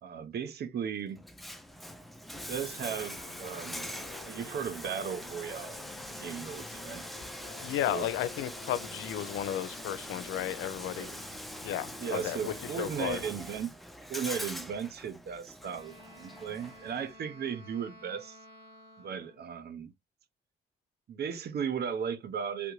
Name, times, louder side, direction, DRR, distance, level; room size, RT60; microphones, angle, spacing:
voice 1, 0.0-1.2 2.3-3.9 4.2-5.8 6.1-7.0 7.9-8.1 10.9-11.2 12.0-13.7 14.1-18.4 19.0-19.9 21.1-22.7, right 7 dB, 55° right, 0.7 m, -36 dB
Bathtub (filling or washing), 1.2-17.1, equal, ahead, 0.5 m, -43 dB
sound 1, 2.3-13.1, left 4 dB, 50° left, 1.0 m, -50 dB
voice 2, 7.6-11.2 11.6-13.2, left 11 dB, 90° left, 0.5 m, -34 dB
Wind instrument woodwind instrument, 15.6-19.5, equal, 30° right, 2.5 m, -53 dB
3.4 x 2.5 x 3.0 m
cardioid pair, 90°, 20 cm